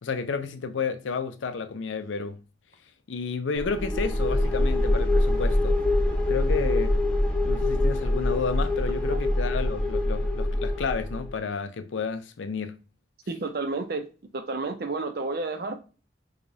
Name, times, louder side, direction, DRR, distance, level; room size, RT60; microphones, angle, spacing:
voice 1, 0.0-2.4 3.1-5.8 6.3-7.0 7.4-12.8, left 5 dB, 85° left, 0.5 m, -31 dB
sound 1, 3.5-11.3, left 1 dB, 5° left, 0.7 m, -24 dB
voice 2, 13.3-14.1 14.3-15.8, right 3 dB, 55° right, 0.5 m, -31 dB
4.8 x 2.3 x 2.7 m
head